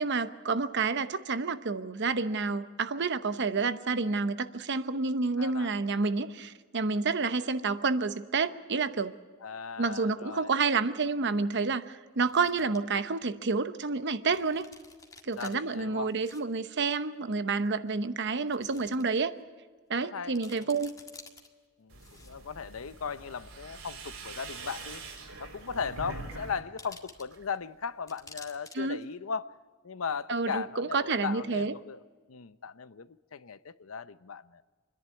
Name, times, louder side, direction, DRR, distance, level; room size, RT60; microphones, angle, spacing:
voice 1, 0.0-9.2 9.8-14.6 15.2-19.4 19.9-20.9 28.7-29.0 30.3-31.7, right 4 dB, 60° right, 0.9 m, -29 dB
voice 2, 5.4-5.7 9.4-10.5 15.4-16.1 20.0-20.7 21.8-25.0 25.4-29.5 29.8-32.0 32.3-34.6, left 6 dB, 75° left, 0.7 m, -37 dB
sound 1, 10.6-10.7 12.1-12.8 13.3-13.4 14.3-15.5 16.1-16.4 16.7-16.8 17.6-17.7 18.4-19.0 19.4-19.5 20.0-20.1 20.3-21.5 22.0-22.6 23.5-23.6 24.4-25.3 25.6-25.7 26.8-27.6 28.1-28.8 29.0-29.1, left 3 dB, 15° left, 1.8 m, -51 dB
sound 2, 21.9-26.6 26.9-27.5, right 3 dB, 90° right, 3.6 m, -44 dB
27.5 x 11.0 x 9.5 m
head